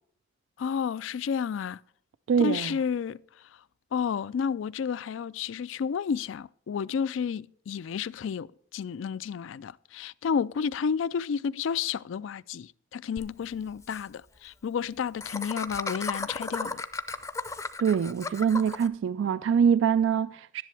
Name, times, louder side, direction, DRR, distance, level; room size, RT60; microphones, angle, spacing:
voice 1, 0.6-1.8 2.4-3.2 3.9-16.8, left 6 dB, 70° left, 0.3 m, -31 dB
voice 2, 2.3-2.7 17.8-20.6, right 7 dB, 70° right, 0.3 m, -24 dB
Laughter, 13.2-13.3 13.5-13.6 13.8-14.0 15.2-18.9, left 3 dB, 15° left, 0.5 m, -34 dB
11.0 x 10.5 x 3.3 m
head